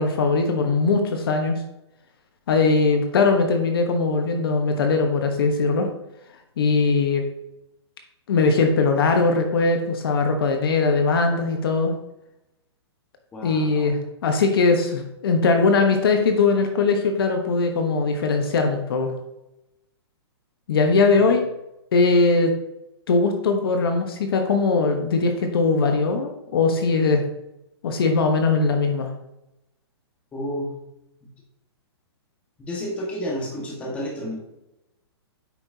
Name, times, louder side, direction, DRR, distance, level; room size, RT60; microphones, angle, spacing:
voice 1, 0.0-1.6 2.5-5.9 6.6-7.3 8.3-11.9 13.4-19.1 20.7-21.4 21.9-22.5 23.1-27.2 27.8-29.1, left 4 dB, 55° left, 4 dB, 1.1 m, -20 dB
voice 2, 13.3-13.9 21.2-21.3 30.3-30.7 31.2-31.3 32.6-34.4, equal, 10° left, -3 dB, 1.4 m, -31 dB
8.8 x 5.8 x 2.8 m, 0.89 s
hypercardioid pair, 165°, 14 cm